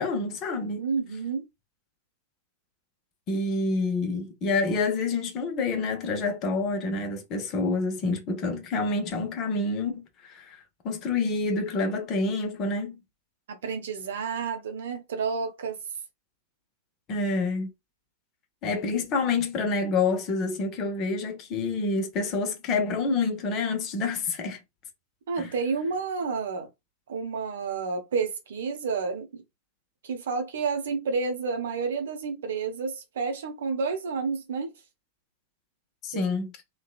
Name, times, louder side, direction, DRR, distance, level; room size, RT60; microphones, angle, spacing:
voice 1, 0.0-0.8 3.3-13.0 17.1-17.7 18.6-24.6 25.4-25.5 36.0-36.5, left 3 dB, 35° left, 0.7 m, -28 dB
voice 2, 0.8-1.4 13.5-15.8 25.3-26.7 27.1-29.4 30.0-34.7 36.1-36.3, right 5 dB, 60° right, 0.7 m, -30 dB
2.8 x 2.3 x 2.3 m
figure-of-eight pair, 90°, 0 cm